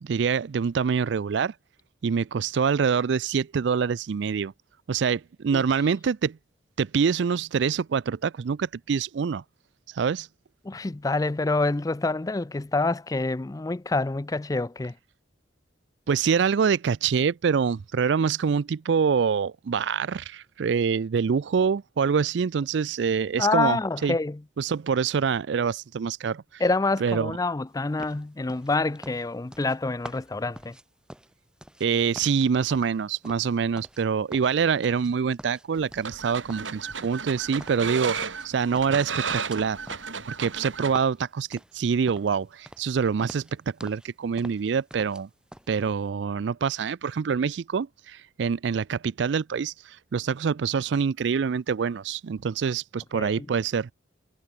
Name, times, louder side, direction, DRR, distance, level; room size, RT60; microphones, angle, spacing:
voice 1, 0.0-1.5 2.0-4.5 4.9-6.4 6.8-9.4 9.9-10.3 16.1-24.2 24.6-26.6 27.0-27.4 31.8-39.8 40.2-45.3 45.7-53.9, right 6 dB, 70° right, 0.4 m, -25 dB
voice 2, 10.6-14.9 23.4-24.4 26.6-30.8 53.1-53.5, left 3 dB, 20° left, 0.4 m, -27 dB
sound 1, 28.0-31.9 32.1-34.0 34.3-35.1 35.4-36.2 36.5-38.5 38.7-42.4 42.7-42.9 43.2-44.1 44.4-45.2 45.5-45.7, equal, 5° right, 2.2 m, -46 dB
sound 2, 35.7-40.9, right 5 dB, 90° right, 4.3 m, -33 dB
head